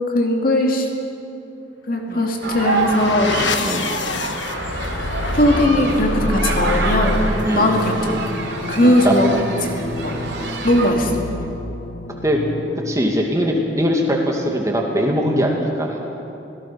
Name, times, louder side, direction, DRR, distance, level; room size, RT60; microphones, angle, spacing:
voice 1, 0.1-0.9 1.9-3.3 5.3-7.2 7.6-8.1 8.7-9.3 9.8-10.2 10.6-11.1, left 1 dB, 50° left, 1 dB, 2.4 m, -18 dB
sound 1, 2.3-13.0, left 2 dB, 75° left, 1.3 m, -27 dB
sound 2, 2.4-10.9, right 2 dB, 65° right, 3.5 m, -27 dB
voice 2, 3.6-4.0 7.5-7.7 8.8-9.1 10.1-10.2 12.1-12.4 12.9-16.0, equal, 15° right, 0 dB, 2.3 m, -21 dB
27.0 x 18.0 x 6.0 m, 2.8 s
head